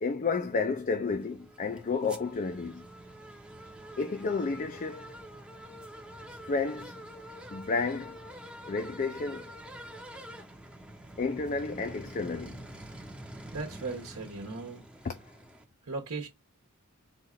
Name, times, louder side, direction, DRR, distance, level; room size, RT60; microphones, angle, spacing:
voice 1, 0.0-2.8 4.0-5.0 6.4-6.9 7.5-8.2 8.6-9.5 11.2-12.6 15.0-15.1, left 4 dB, 35° left, 0.4 m, -31 dB
sound 1, 1.1-15.6, equal, 5° right, 0.7 m, -46 dB
voice 2, 13.5-14.9 15.9-16.3, right 3 dB, 75° right, 1.0 m, -37 dB
4.1 x 2.5 x 4.2 m
head